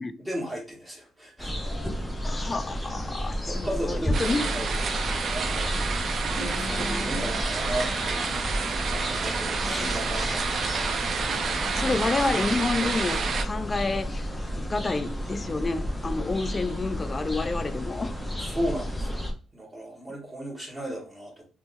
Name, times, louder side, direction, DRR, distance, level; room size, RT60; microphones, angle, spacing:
voice 1, 0.2-1.7 3.5-5.7 6.3-8.1 8.4-11.0 18.4-19.2 19.5-21.4, equal, 10° right, 1.5 m, -35 dB
sound 1, 1.4-19.3, equal, 10° left, 0.8 m, -32 dB
voice 2, 2.2-4.5 6.4-7.3 9.6-9.9 11.7-14.3 14.6-18.2, left 3 dB, 30° left, 0.4 m, -30 dB
sound 2, 4.1-13.4, right 5 dB, 55° right, 0.6 m, -29 dB
3.6 x 2.9 x 2.6 m
cardioid pair, 90°, 0 cm